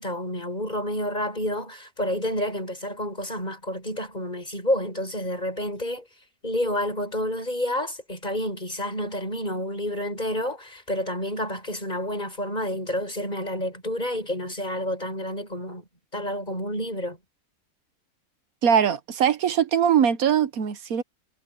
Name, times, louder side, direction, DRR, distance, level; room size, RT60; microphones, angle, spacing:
voice 1, 0.0-6.1 6.4-17.2, left 1 dB, 30° left, 7.3 m, -29 dB
voice 2, 18.6-21.0, right 8 dB, 75° right, 1.4 m, -21 dB
omnidirectional pair, 1.5 m